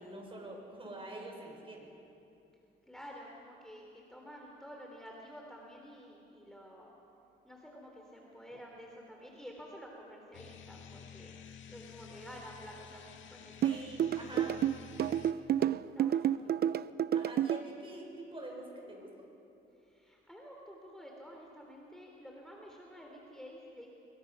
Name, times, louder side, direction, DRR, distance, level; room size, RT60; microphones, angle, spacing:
voice 1, 0.0-1.9 13.6-14.5 17.1-19.2, right 1 dB, 25° right, 0 dB, 6.2 m, -45 dB
voice 2, 2.9-6.9 7.4-13.8 14.3-14.7 15.5-16.7 19.7-23.9, equal, 5° left, -1 dB, 3.3 m, -51 dB
sound 1, 10.3-15.3, left 8 dB, 75° left, 1.7 m, -51 dB
sound 2, 13.6-17.6, right 10 dB, 55° right, 0.6 m, -29 dB
24.0 x 22.0 x 6.1 m, 2.8 s
cardioid pair, 90°, 20 cm